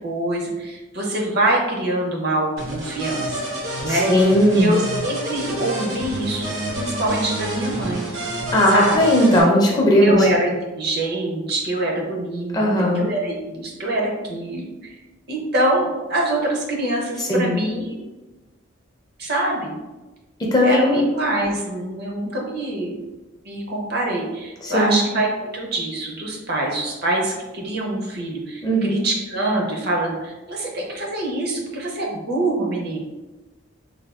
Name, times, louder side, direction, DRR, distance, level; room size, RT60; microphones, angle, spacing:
voice 1, 0.0-3.5 3.8-8.1 8.7-9.0 10.0-12.7 12.9-15.0 15.3-18.0 19.2-19.8 20.6-23.0 23.4-33.0, right 1 dB, 50° right, -1 dB, 0.6 m, -25 dB
sound 1, 2.6-9.4, right 1 dB, 80° right, 0.9 m, -28 dB
voice 2, 3.9-4.7 8.5-10.3 12.5-13.0 17.2-17.5 20.5-21.0 24.6-25.0 28.6-29.0, equal, 20° left, -2 dB, 0.4 m, -17 dB
3.4 x 2.2 x 2.3 m, 1.1 s
head